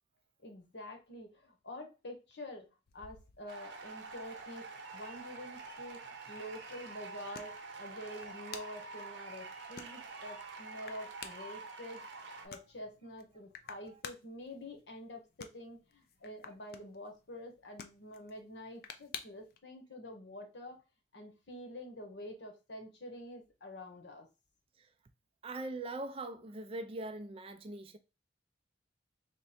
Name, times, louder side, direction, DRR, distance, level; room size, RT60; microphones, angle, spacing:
voice 1, 0.4-4.6 4.9-12.0 12.4-20.8 21.1-24.3, left 1 dB, 70° left, 1.0 m, -47 dB
sound 1, 2.9-19.6, left 7 dB, 55° left, 0.4 m, -54 dB
sound 2, 3.5-12.5, right 3 dB, 75° right, 0.8 m, -47 dB
voice 2, 25.4-28.0, right 2 dB, 30° right, 0.4 m, -41 dB
3.6 x 2.1 x 4.2 m
head